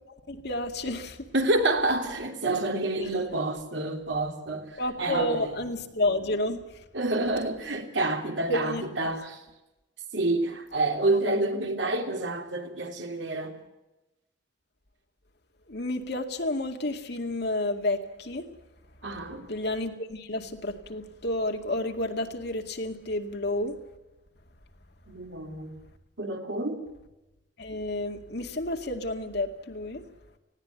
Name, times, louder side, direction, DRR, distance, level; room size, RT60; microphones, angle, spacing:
voice 1, 0.1-1.3 3.0-3.1 4.8-6.6 8.5-8.8 15.7-18.5 19.5-23.8 27.6-30.0, left 1 dB, 60° left, 2.2 m, -30 dB
voice 2, 1.3-5.7 6.9-9.4 10.1-13.5 19.0-19.5 25.1-25.7 26.2-26.8, right 2 dB, 75° right, 3.2 m, -28 dB
19.5 x 16.5 x 9.2 m
head